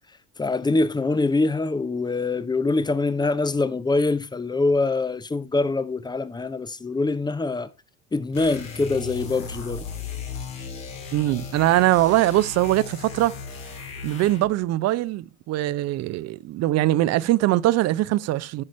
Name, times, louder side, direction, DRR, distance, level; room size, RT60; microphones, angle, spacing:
voice 1, 0.4-7.7 8.1-9.8, left 3 dB, 10° left, 0.6 m, -24 dB
sound 1, 8.3-14.6, left 5 dB, 80° left, 2.5 m, -36 dB
voice 2, 11.1-13.3 14.0-18.6, right 15 dB, 40° right, 0.6 m, -22 dB
14.5 x 6.4 x 3.2 m
figure-of-eight pair, 65°, 39 cm